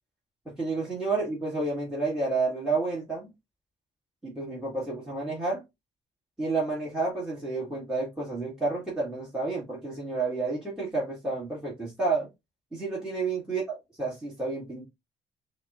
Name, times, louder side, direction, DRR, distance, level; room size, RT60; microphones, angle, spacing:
voice 1, 0.4-3.3 4.2-5.6 6.4-12.3 12.7-14.9, right 3 dB, 5° right, 1.5 m, -30 dB
6.2 x 2.1 x 2.4 m
cardioid pair, 120°, 11 cm